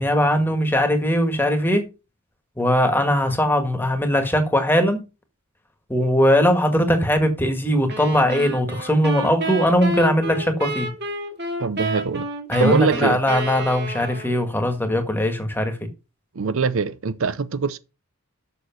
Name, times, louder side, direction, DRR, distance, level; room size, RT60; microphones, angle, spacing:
voice 1, 0.0-1.9 2.6-5.0 5.9-10.9 12.5-15.8, equal, 10° left, 1.6 m, -20 dB
sound 1, 7.9-14.5, right 1 dB, 50° right, 2.3 m, -30 dB
voice 2, 11.6-12.3 12.6-13.2 16.3-17.8, right 4 dB, 65° right, 0.6 m, -23 dB
7.0 x 6.5 x 5.8 m
head